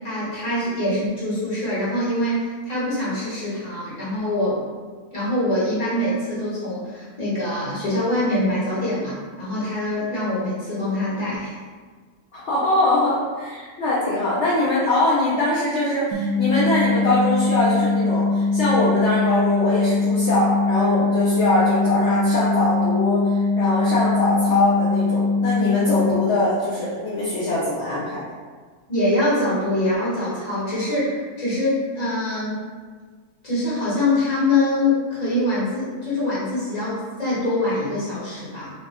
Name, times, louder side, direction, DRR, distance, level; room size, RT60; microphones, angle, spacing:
voice 1, 0.0-4.6 5.1-11.6 28.9-32.6 33.4-38.7, left 1 dB, 25° left, -9 dB, 1.4 m, -24 dB
voice 2, 12.3-28.2, left 2 dB, 55° left, -8 dB, 0.9 m, -22 dB
sound 1, 16.1-26.1, left 3 dB, 70° right, 0.9 m, -21 dB
4.2 x 2.3 x 3.6 m, 1.5 s
omnidirectional pair, 1.6 m